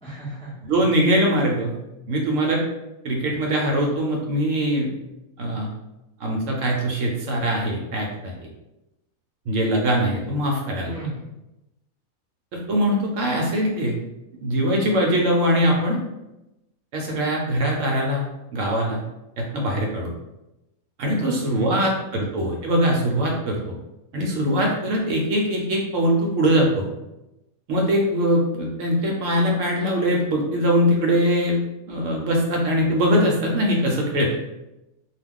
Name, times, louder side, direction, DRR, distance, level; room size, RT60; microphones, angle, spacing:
voice 1, 0.0-0.5 0.8-0.9 10.9-11.3 21.2-22.0, right 1 dB, 5° left, -7 dB, 0.4 m, -34 dB
voice 2, 0.6-1.8 2.1-2.6 3.0-4.9 5.4-5.7 6.2-8.3 9.5-10.9 12.5-14.0 14.4-16.0 16.9-18.2 18.5-19.0 19.4-20.1 21.0-23.6 24.1-26.8 27.7-31.6 31.9-34.4, equal, 70° right, -1 dB, 0.9 m, -22 dB
2.3 x 2.3 x 3.5 m, 0.95 s
omnidirectional pair, 1.5 m